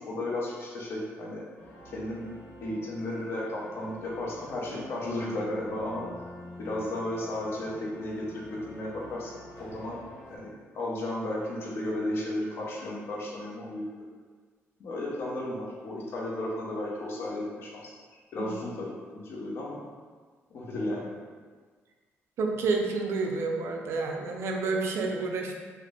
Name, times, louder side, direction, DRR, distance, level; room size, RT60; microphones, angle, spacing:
voice 1, 0.0-1.4 1.9-2.3 2.6-6.1 6.6-9.3 9.6-10.0 10.3-13.9 14.8-17.9 18.3-19.8 20.5-21.1, left 1 dB, 50° left, -4 dB, 0.7 m, -34 dB
sound 1, 1.6-10.4, left 1 dB, 80° left, 0.9 m, -48 dB
voice 2, 22.4-25.5, right 3 dB, 60° right, 2 dB, 0.4 m, -29 dB
3.8 x 2.0 x 3.4 m, 1.5 s
cardioid pair, 180°, 5 cm